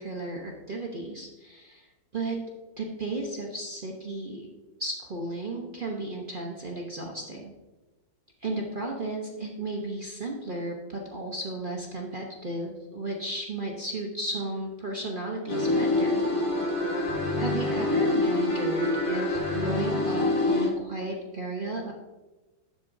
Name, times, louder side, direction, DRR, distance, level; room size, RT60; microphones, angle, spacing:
voice 1, 0.0-1.9 2.1-2.4 2.8-4.5 4.8-7.5 8.4-16.2 17.4-21.9, right 2 dB, 45° right, 0 dB, 0.7 m, -34 dB
sound 1, 15.5-20.7, left 2 dB, 25° left, 0.8 m, -26 dB
11.5 x 7.5 x 2.6 m, 1.1 s
omnidirectional pair, 2.1 m